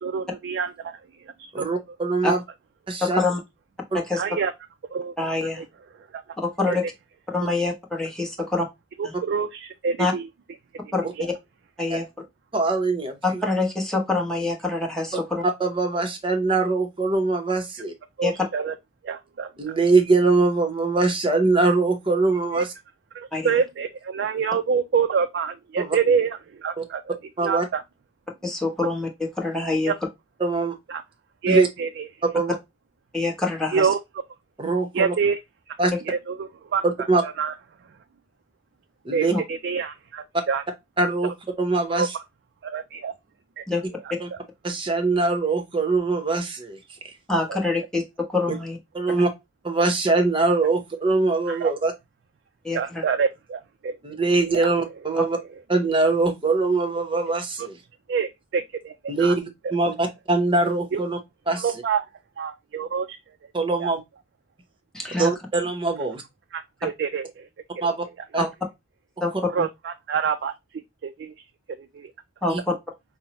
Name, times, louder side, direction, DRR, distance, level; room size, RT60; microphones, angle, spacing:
voice 1, 0.0-1.0 1.4-1.6 4.1-4.5 4.9-5.1 5.4-5.6 6.1-6.2 6.7-6.8 9.0-10.3 10.8-11.3 18.2-18.7 19.0-19.5 22.5-22.6 23.1-27.1 27.4-27.8 29.8-29.9 30.9-31.0 31.4-32.1 33.7-34.0 34.9-35.4 35.7-35.8 36.1-36.8 37.2-37.5 39.1-40.6 41.9-42.1 42.6-43.1 43.6-43.7 44.3-44.4 47.5-47.6 51.5-51.7 52.7-54.0 54.5-54.6 58.1-59.4 60.9-61.0 61.6-62.0 62.4-63.2 63.8-63.9 66.5-67.5 69.5-70.5 71.0-71.3 71.8-72.1, right 6 dB, 60° right, 0.3 m, -26 dB
voice 2, 1.5-2.4 2.9-3.2 11.9-12.0 12.5-13.4 15.1-15.2 15.6-17.9 19.6-22.7 25.8-26.0 26.8-26.9 27.4-27.7 30.4-30.7 31.5-31.7 32.3-32.5 34.6-35.1 35.8-35.9 36.8-37.2 39.0-39.3 41.0-41.3 41.6-42.2 44.2-44.3 44.6-46.8 47.0-47.1 48.9-49.3 49.6-51.9 54.0-55.4 55.7-57.8 59.1-61.2 61.5-61.7 63.5-64.0 65.2-66.2 67.8-68.0 68.3-68.4 69.3-69.4 72.5-72.6, right 3 dB, 25° right, 0.8 m, -22 dB
voice 3, 3.0-3.4 3.9-4.2 5.2-5.6 6.4-6.8 7.3-8.6 10.0-10.1 10.9-11.0 11.8-12.0 13.2-15.4 18.2-18.3 23.3-23.5 28.4-29.9 33.1-33.9 39.3-39.4 43.7-43.8 47.3-48.0 48.3-48.8 52.6-53.0 64.9-65.3 68.4-68.5 69.2-69.3 72.4-72.7, left 3 dB, 5° left, 0.9 m, -25 dB
5.3 x 2.1 x 2.8 m
head